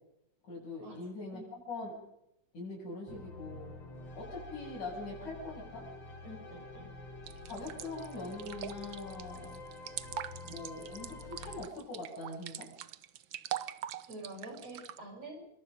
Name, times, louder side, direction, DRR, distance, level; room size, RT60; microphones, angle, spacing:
voice 1, 0.4-2.0 2.5-3.7 4.1-5.9 7.5-9.6 10.4-12.7, left 2 dB, 75° left, -8 dB, 9.6 m, -42 dB
sound 1, 3.1-11.7, left 3 dB, 55° left, 4.2 m, -48 dB
voice 2, 6.2-6.9 14.1-15.5, right 1 dB, 55° right, 4 dB, 7.2 m, -46 dB
sound 2, 7.3-15.0, right 11 dB, 75° right, 1.1 m, -43 dB
26.0 x 24.0 x 5.4 m, 0.80 s
omnidirectional pair, 3.5 m